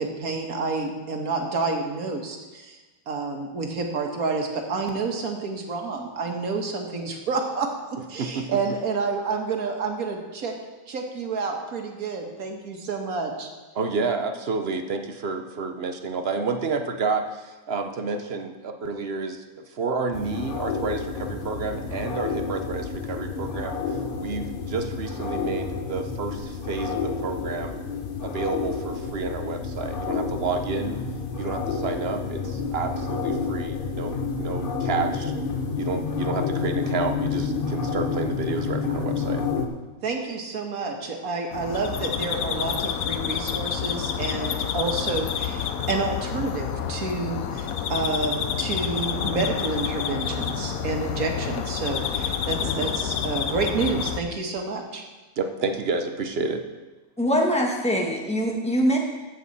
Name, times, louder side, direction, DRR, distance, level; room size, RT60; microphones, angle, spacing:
voice 1, 0.0-2.8 3.1-10.6 10.9-13.5 40.0-55.0, right 4 dB, 80° right, 3 dB, 1.8 m, -29 dB
voice 2, 8.2-8.6 13.8-19.4 19.7-23.8 24.2-27.8 28.2-31.1 31.4-35.3 35.7-39.4 52.6-52.9 55.4-56.6, right 4 dB, 50° right, 6 dB, 0.9 m, -30 dB
sound 1, 20.1-39.7, left 5 dB, 40° left, 1.0 m, -29 dB
sound 2, 41.5-54.2, left 8 dB, 75° left, 1.1 m, -28 dB
voice 3, 57.2-59.0, equal, 5° left, -1 dB, 1.4 m, -23 dB
14.0 x 7.7 x 4.1 m, 1.2 s
omnidirectional pair, 1.5 m